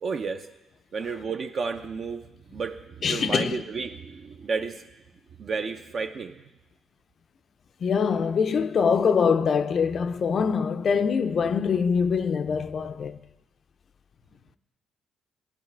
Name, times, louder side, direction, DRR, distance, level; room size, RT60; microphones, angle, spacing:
voice 1, 0.0-0.5 0.9-4.8 5.4-6.4, right 5 dB, 50° right, 0.4 m, -32 dB
voice 2, 3.0-3.6 7.8-13.2, left 6 dB, 50° left, 0.4 m, -24 dB
12.5 x 10.0 x 3.3 m
cardioid pair, 100°, 0 cm